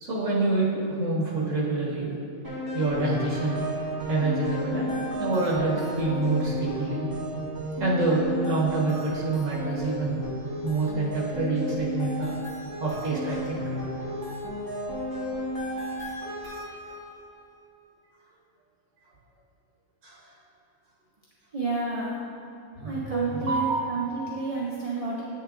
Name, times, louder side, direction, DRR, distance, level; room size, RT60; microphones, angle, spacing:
voice 1, 0.0-2.2 2.7-3.6 4.1-7.1 7.8-10.2 10.6-12.3 12.8-13.9 20.0-20.2 22.8-24.2, right 2 dB, 80° right, -4 dB, 1.7 m, -27 dB
sound 1, 2.4-17.1, equal, 15° right, 1.4 m, -33 dB
voice 2, 21.5-22.2 22.8-25.2, right 3 dB, 35° right, -5 dB, 0.6 m, -30 dB
8.5 x 6.6 x 2.5 m, 2.6 s
omnidirectional pair, 1.3 m